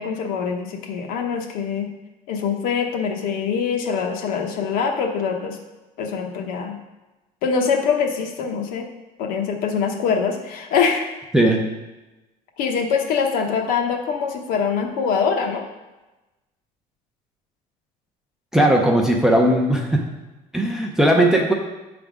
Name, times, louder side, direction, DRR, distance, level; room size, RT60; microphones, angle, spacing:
voice 1, 0.0-1.9 2.3-5.6 6.0-6.8 7.4-8.9 9.2-11.1 12.6-15.7, left 6 dB, 65° left, 3 dB, 0.9 m, -23 dB
voice 2, 18.5-20.0 20.5-21.5, right 1 dB, 5° right, 0 dB, 0.5 m, -17 dB
8.2 x 3.5 x 5.0 m, 1.1 s
cardioid pair, 180°, 16 cm